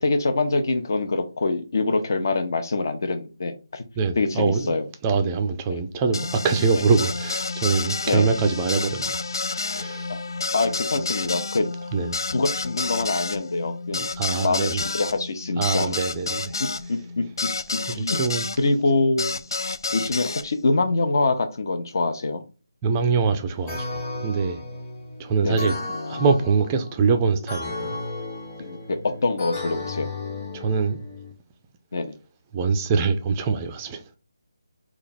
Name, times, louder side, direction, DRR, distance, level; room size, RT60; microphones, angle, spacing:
voice 1, 0.0-3.8 4.2-4.9 5.7-5.8 6.7-6.8 8.1-8.3 10.1-10.2 10.5-11.7 12.3-14.0 14.3-16.0 16.6-17.2 17.9-18.2 18.6-19.4 19.9-22.4 25.4-25.8 28.6-30.1 31.9-32.2, left 3 dB, 50° left, 0.7 m, -25 dB
voice 2, 4.0-4.8 5.0-9.2 9.7-10.1 11.9-12.2 13.9-14.8 15.6-16.6 17.9-18.5 22.8-24.6 25.2-25.7 26.1-27.9 30.5-31.0 32.5-34.0, right 5 dB, 15° right, 0.4 m, -24 dB
sound 1, 6.1-18.6 19.2-20.4, left 3 dB, 65° left, 0.4 m, -30 dB
sound 2, 23.7-31.3, left 3 dB, 20° left, 1.1 m, -34 dB
3.2 x 2.3 x 4.0 m
figure-of-eight pair, 170°, 2 cm